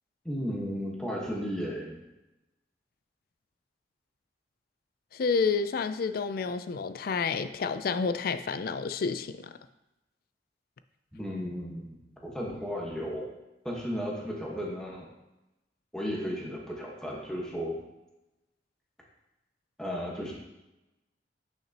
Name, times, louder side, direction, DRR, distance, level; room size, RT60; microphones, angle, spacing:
voice 1, 0.2-2.0 11.1-11.9 12.2-13.3 13.6-15.1 15.9-17.7 19.8-20.3, equal, 5° left, -4 dB, 1.4 m, -34 dB
voice 2, 5.1-9.5, left 5 dB, 55° left, 11 dB, 0.4 m, -29 dB
8.8 x 5.7 x 3.0 m, 0.96 s
head